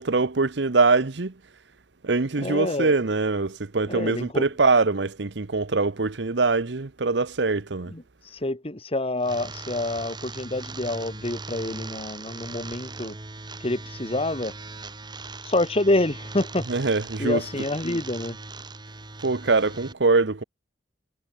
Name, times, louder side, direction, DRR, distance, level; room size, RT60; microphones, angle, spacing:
voice 1, 0.0-1.3 2.0-7.9 16.7-17.4 19.2-20.4, right 3 dB, 70° right, 1.0 m, -23 dB
voice 2, 2.4-2.9 3.9-4.5 7.9-13.2 13.6-14.5 15.4-16.7 17.2-18.4, left 2 dB, 35° left, 2.0 m, -27 dB
sound 1, 9.2-19.9, right 3 dB, 25° right, 1.8 m, -39 dB
head